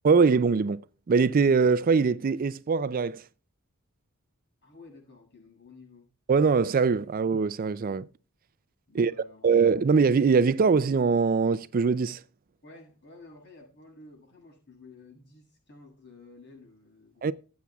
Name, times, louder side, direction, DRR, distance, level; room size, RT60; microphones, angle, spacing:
voice 1, 0.0-0.8 1.1-3.2 6.3-8.0 8.9-9.1 9.4-12.2 17.2-17.3, right 5 dB, 40° right, 0.4 m, -22 dB
voice 2, 4.6-6.1 8.9-9.5 12.6-17.3, left 3 dB, 50° left, 7.1 m, -52 dB
19.0 x 8.3 x 2.3 m
head